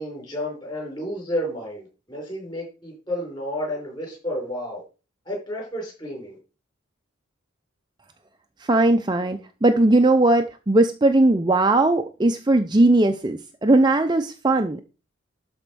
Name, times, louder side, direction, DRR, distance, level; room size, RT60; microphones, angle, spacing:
voice 1, 0.0-4.8 5.3-6.4, equal, 20° left, -1 dB, 5.3 m, -31 dB
voice 2, 8.6-14.8, right 2 dB, 20° right, 7 dB, 0.5 m, -19 dB
12.0 x 4.4 x 6.2 m, 0.33 s
head